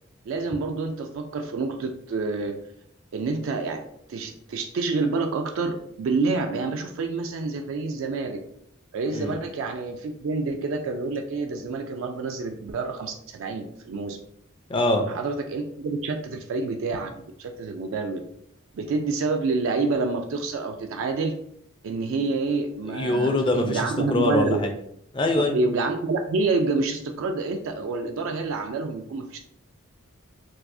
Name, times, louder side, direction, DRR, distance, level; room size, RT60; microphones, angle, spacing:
voice 1, 0.3-2.6 3.1-3.8 4.1-8.4 8.9-14.2 15.1-17.1 17.4-18.2 18.7-21.3 21.8-24.6 25.5-29.4, right 3 dB, 70° right, 4 dB, 0.3 m, -28 dB
voice 2, 14.7-15.0 22.9-24.7 25.1-25.6, left 2 dB, 25° left, 4 dB, 0.4 m, -24 dB
4.6 x 2.0 x 2.6 m, 0.71 s
head